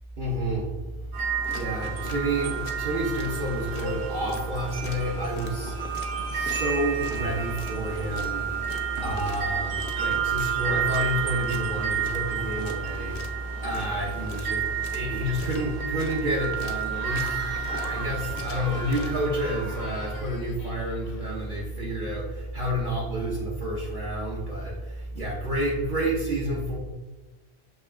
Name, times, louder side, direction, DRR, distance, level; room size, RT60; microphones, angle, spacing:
voice 1, 0.2-0.7 1.5-5.8 6.3-8.5 9.0-26.8, right 1 dB, 55° right, -5 dB, 0.8 m, -29 dB
sound 1, 1.1-20.2, right 9 dB, 90° right, 1.0 m, -32 dB
sound 2, 1.4-19.2, left 3 dB, 80° left, 0.9 m, -43 dB
Cheering / Crowd, 16.9-21.5, left 4 dB, 55° left, 0.5 m, -42 dB
6.4 x 2.9 x 2.4 m, 1.1 s
omnidirectional pair, 1.1 m